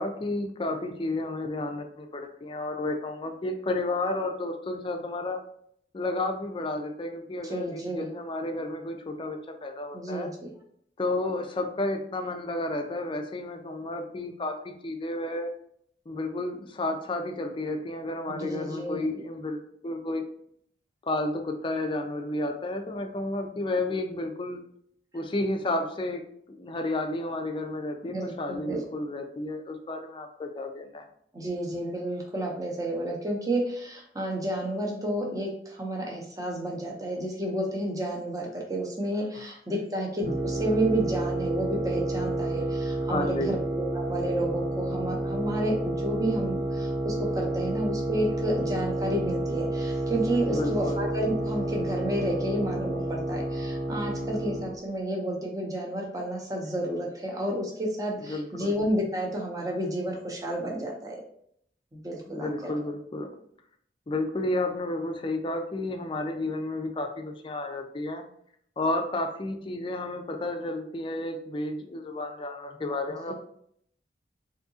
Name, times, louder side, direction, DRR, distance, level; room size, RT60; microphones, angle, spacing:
voice 1, 0.0-5.4 5.9-10.3 11.0-15.5 16.1-20.2 21.0-24.6 25.1-31.0 43.1-43.6 50.4-51.0 58.3-58.7 62.3-63.3 64.1-68.2 68.8-73.3, left 2 dB, 30° left, 5 dB, 0.4 m, -31 dB
voice 2, 7.4-8.1 9.9-10.5 18.3-19.0 28.0-28.3 28.6-28.8 31.3-61.2 61.9-62.7, right 1 dB, 20° right, 0 dB, 0.7 m, -31 dB
sound 1, 40.2-54.8, right 1 dB, 65° right, 1.2 m, -30 dB
3.5 x 2.7 x 2.7 m, 0.68 s
head